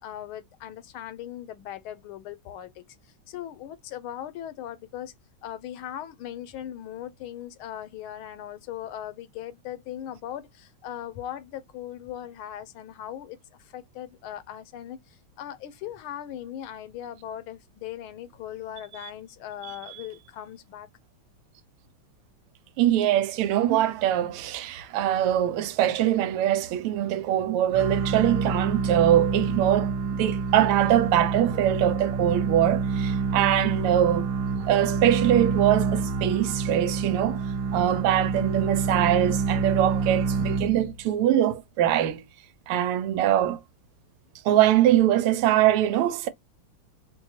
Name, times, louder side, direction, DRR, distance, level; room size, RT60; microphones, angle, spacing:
voice 1, 0.0-5.1 5.4-20.9, left 11 dB, 80° left, 1.5 m, -39 dB
voice 2, 22.8-34.3 34.7-37.4 37.7-42.2 42.7-43.6 44.4-46.3, right 12 dB, 90° right, 1.5 m, -23 dB
sound 1, 27.7-41.1, right 5 dB, 60° right, 1.2 m, -27 dB
4.5 x 2.3 x 2.7 m
omnidirectional pair, 2.4 m